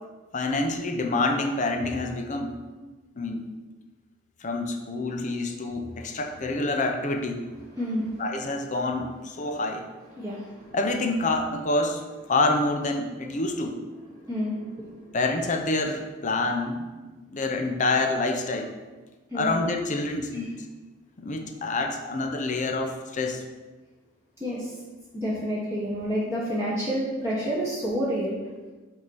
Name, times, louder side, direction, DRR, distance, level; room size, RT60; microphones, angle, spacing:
voice 1, 0.3-2.6 3.2-3.5 4.4-7.4 8.2-9.9 10.7-12.0 12.3-13.8 15.1-18.7 19.3-20.5 21.2-23.4, left 2 dB, 35° left, 4 dB, 0.6 m, -27 dB
voice 2, 7.8-8.2 10.2-10.7 14.3-15.2 19.3-19.6 20.3-20.4 24.4-24.7 25.1-28.3, equal, 15° right, -9 dB, 1.0 m, -29 dB
7.9 x 2.8 x 5.4 m, 1.3 s
head